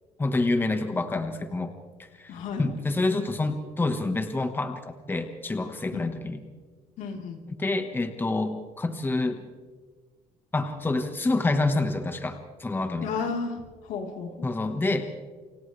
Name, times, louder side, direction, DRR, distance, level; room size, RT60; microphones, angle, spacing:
voice 1, 0.2-1.7 2.2-6.4 7.6-9.5 10.5-13.1 14.4-15.1, left 2 dB, 15° left, 7 dB, 1.4 m, -27 dB
voice 2, 2.3-2.8 5.9-6.1 7.0-7.4 13.0-14.5, left 5 dB, 85° left, 1 dB, 3.7 m, -33 dB
29.5 x 26.5 x 3.3 m, 1.5 s
cardioid pair, 130°, 13 cm